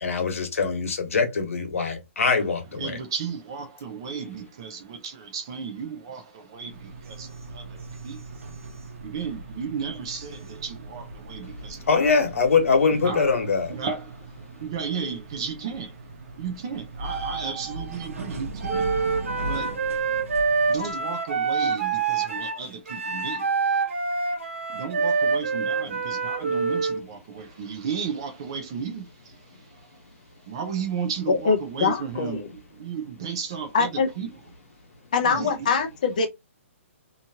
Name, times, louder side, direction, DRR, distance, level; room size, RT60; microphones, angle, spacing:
voice 1, 0.0-3.0 11.9-13.7, left 4 dB, 85° left, 1.1 m, -23 dB
voice 2, 2.7-12.1 12.9-13.4 13.7-18.9 19.4-19.8 20.7-23.8 24.7-30.0 30.4-34.3 35.2-35.7, right 6 dB, 20° right, 0.4 m, -34 dB
sound 1, 6.6-21.0, right 3 dB, 90° right, 0.9 m, -38 dB
Wind instrument woodwind instrument, 18.7-27.0, right 4 dB, 70° right, 1.2 m, -26 dB
voice 3, 31.3-32.4 33.7-34.1 35.1-36.3, left 5 dB, 35° left, 0.5 m, -23 dB
2.8 x 2.4 x 2.8 m
hypercardioid pair, 180°, 7 cm